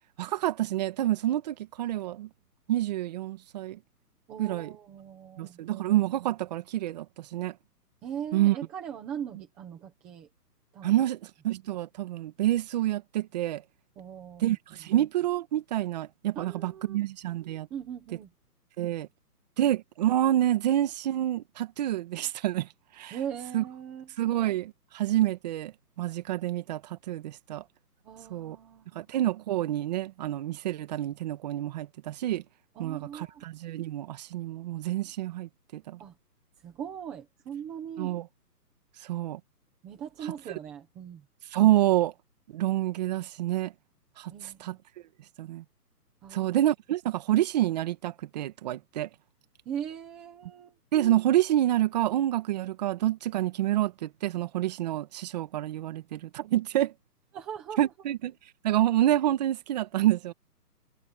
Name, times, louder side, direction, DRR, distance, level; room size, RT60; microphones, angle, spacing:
voice 1, 0.2-2.3 2.7-3.8 4.4-4.7 5.4-7.1 7.3-7.5 8.3-8.6 10.8-11.2 11.4-13.6 14.4-17.7 18.8-19.1 19.6-22.7 23.0-23.2 23.5-23.6 24.2-25.7 26.0-27.6 28.3-28.6 29.0-32.4 32.8-36.0 38.0-38.2 39.1-39.4 41.5-42.1 42.5-43.7 44.2-44.3 44.6-44.8 45.4-45.6 46.3-49.1 50.9-56.9 57.8-58.3 58.6-60.3, right 13 dB, 25° right, 1.9 m, -27 dB
voice 2, 4.3-5.8 8.0-10.3 10.7-10.9 14.0-14.6 16.3-17.0 17.7-18.3 23.1-24.1 28.0-29.1 32.7-33.4 36.0-36.2 36.6-38.1 39.8-41.2 44.3-44.7 46.2-46.6 49.7-50.8 57.3-57.9, right 8 dB, 5° right, 0.7 m, -40 dB
hypercardioid pair, 160°, 48 cm